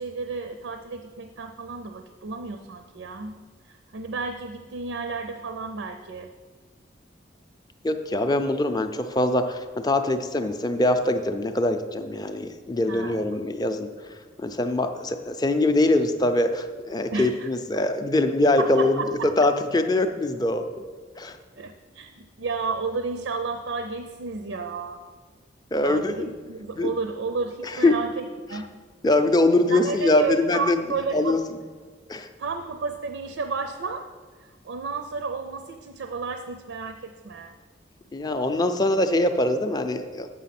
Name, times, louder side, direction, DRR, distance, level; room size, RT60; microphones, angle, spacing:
voice 1, 0.0-3.3 3.6-6.3 12.9-13.3 17.1-17.5 18.6-19.3 21.6-25.0 25.8-28.7 29.7-31.4 32.4-34.0 34.4-37.6, right 4 dB, 80° right, 6 dB, 0.5 m, -32 dB
voice 2, 7.8-13.9 14.4-19.0 19.4-20.6 21.2-21.4 25.7-26.3 26.8-26.9 27.8-27.9 29.0-30.8 31.1-31.4 32.1-32.3 38.1-40.3, left 2 dB, 20° left, 8 dB, 0.4 m, -23 dB
7.6 x 6.2 x 5.8 m, 1.5 s
head